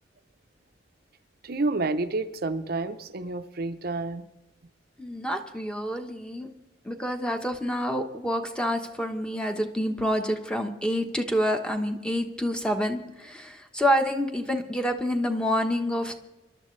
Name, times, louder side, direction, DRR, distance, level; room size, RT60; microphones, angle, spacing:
voice 1, 1.4-4.3, right 3 dB, 55° right, 9 dB, 0.7 m, -29 dB
voice 2, 5.0-6.5 6.8-16.1, equal, 5° left, 5 dB, 1.1 m, -28 dB
26.5 x 12.0 x 3.2 m, 1.0 s
head